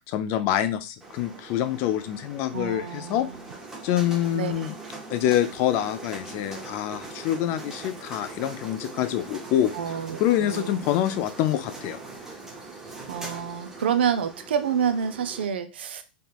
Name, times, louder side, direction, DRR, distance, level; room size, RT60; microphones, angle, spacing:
voice 1, 0.0-3.3 3.8-4.7 5.1-9.7 10.2-12.0, left 12 dB, 45° left, 10 dB, 0.4 m, -26 dB
sound 1, 1.0-15.4, right 3 dB, 10° right, 0.6 m, -41 dB
voice 2, 2.5-3.5 4.3-4.5 9.7-10.8 13.1-16.0, right 8 dB, 80° right, 10 dB, 0.4 m, -28 dB
3.5 x 2.2 x 2.4 m, 0.29 s
hypercardioid pair, 120°, 6 cm